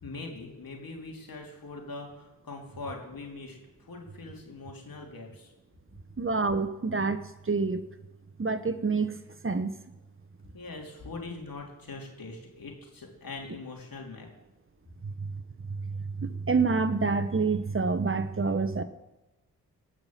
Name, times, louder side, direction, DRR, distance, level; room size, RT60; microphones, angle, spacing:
voice 1, 0.0-3.6 3.9-5.5 10.5-14.3, left 3 dB, 60° left, 0 dB, 3.5 m, -42 dB
voice 2, 6.2-7.9 8.4-9.2 9.4-9.8 15.0-15.1 15.8-18.8, right 4 dB, 35° right, 11 dB, 1.0 m, -27 dB
18.0 x 6.0 x 7.3 m, 1.0 s
supercardioid pair, 40°, 38 cm